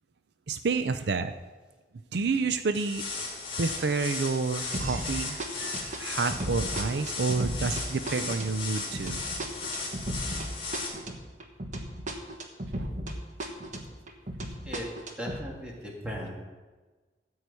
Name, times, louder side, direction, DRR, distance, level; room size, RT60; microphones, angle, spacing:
voice 1, 0.5-1.3 2.1-3.0 3.6-9.2 12.8-12.9 13.4-13.5, right 4 dB, 70° right, 10 dB, 0.5 m, -29 dB
sound 1, 2.7-10.9, left 3 dB, 30° left, 3.0 m, -36 dB
sound 2, 4.7-5.1 5.4-13.1 13.4-15.4, right 1 dB, 45° right, 1.3 m, -35 dB
voice 2, 15.2-16.4, equal, 5° right, -3 dB, 2.1 m, -37 dB
13.5 x 4.8 x 8.3 m, 1.3 s
head